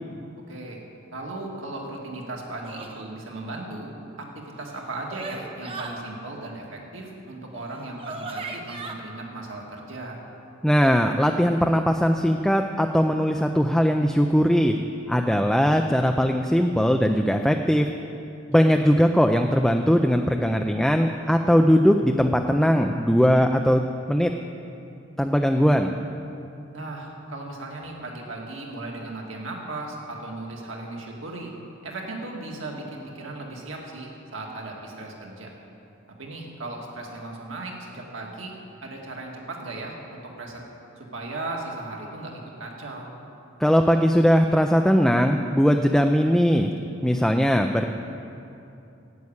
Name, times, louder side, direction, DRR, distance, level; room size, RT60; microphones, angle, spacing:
voice 1, 0.5-0.8 1.1-3.9 4.2-10.2 18.6-18.8 26.7-31.5 31.8-35.5 36.2-38.5 38.8-40.6 41.0-43.1, right 2 dB, 70° right, 0 dB, 1.9 m, -36 dB
sound 1, 2.6-3.1 4.5-6.0 7.5-7.6 8.0-8.9, right 3 dB, 30° right, 1.0 m, -37 dB
voice 2, 10.6-14.7 15.1-17.9 18.5-23.8 24.1-24.3 25.2-26.0 43.6-46.7 47.0-47.9, equal, ahead, 4 dB, 0.4 m, -20 dB
10.5 x 8.3 x 8.7 m, 2.7 s
head